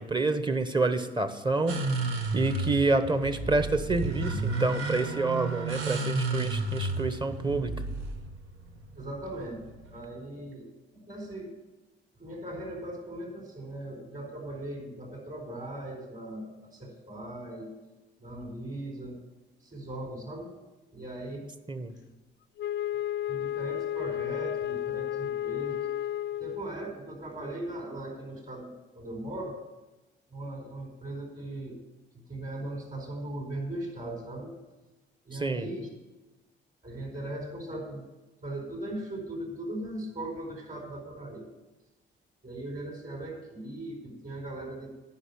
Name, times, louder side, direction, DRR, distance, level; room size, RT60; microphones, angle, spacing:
voice 1, 0.0-7.7 21.7-21.9 35.3-35.7, right 3 dB, 25° right, 10 dB, 1.0 m, -28 dB
sound 1, 1.7-10.0, right 2 dB, 85° right, 1.1 m, -32 dB
voice 2, 9.0-10.7 11.1-11.6 12.2-17.7 18.2-19.2 19.6-20.6 20.9-21.5 23.3-25.9 26.4-29.5 30.3-31.8 32.1-34.5 35.2-35.9 36.8-38.1 38.4-41.5 42.4-45.0, right 1 dB, 40° right, 0 dB, 4.6 m, -39 dB
Wind instrument woodwind instrument, 22.6-26.8, left 12 dB, 60° left, 0.4 m, -32 dB
9.9 x 5.7 x 8.5 m, 1.1 s
cardioid pair, 90°, 20 cm